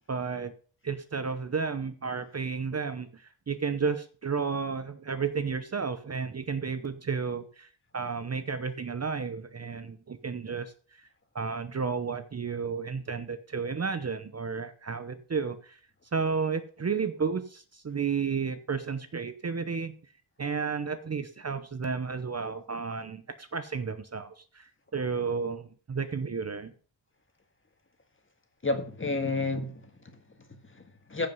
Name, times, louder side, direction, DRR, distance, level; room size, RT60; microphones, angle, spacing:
voice 1, 0.1-0.5 0.8-11.0 11.3-15.8 16.1-19.9 20.4-24.7 24.9-26.7, right 5 dB, 35° right, 0.8 m, -32 dB
voice 2, 28.6-31.3, left 3 dB, 25° left, 1.8 m, -32 dB
15.0 x 5.6 x 5.4 m
wide cardioid pair, 130°, 45 cm